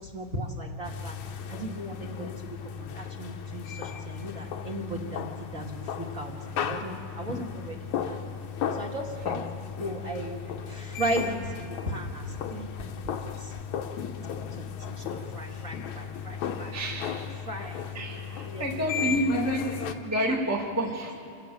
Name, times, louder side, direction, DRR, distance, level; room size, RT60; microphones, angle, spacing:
voice 1, 0.0-8.2 8.7-13.6 14.5-16.7 17.3-18.7 18.9-19.3 20.2-20.5 20.7-21.2, right 1 dB, 30° right, -1 dB, 2.2 m, -37 dB
sound 1, 0.8-20.0, left 7 dB, 75° left, 2.5 m, -35 dB
voice 2, 16.7-17.2 17.9-21.2, right 1 dB, 5° right, -1 dB, 1.5 m, -29 dB
27.5 x 16.5 x 7.7 m, 2.7 s
omnidirectional pair, 3.4 m